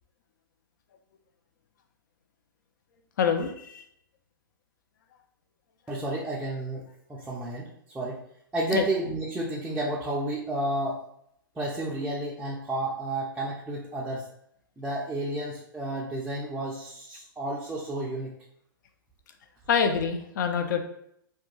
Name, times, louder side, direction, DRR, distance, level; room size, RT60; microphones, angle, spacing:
voice 1, 3.2-3.8 8.7-8.8 19.7-20.8, left 6 dB, 60° left, 6 dB, 0.4 m, -25 dB
voice 2, 5.9-6.8 7.1-7.7 7.9-8.2 8.5-11.0 11.6-14.3 14.8-18.3, right 1 dB, 10° right, -6 dB, 0.4 m, -31 dB
2.2 x 2.2 x 2.9 m, 0.72 s
figure-of-eight pair, 115°, 12 cm